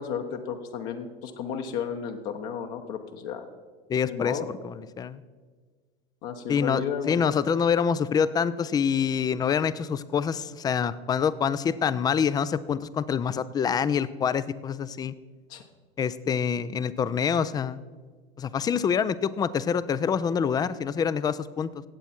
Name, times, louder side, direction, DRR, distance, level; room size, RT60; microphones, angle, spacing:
voice 1, 0.0-3.5 4.0-4.5 6.2-7.2 15.5-15.6, left 7 dB, 50° left, 5 dB, 1.1 m, -33 dB
voice 2, 3.9-5.2 6.5-15.1 16.0-17.8 18.4-21.8, left 7 dB, 15° left, 17 dB, 0.3 m, -26 dB
16.5 x 8.0 x 4.4 m, 1.5 s
figure-of-eight pair, 80°, 31 cm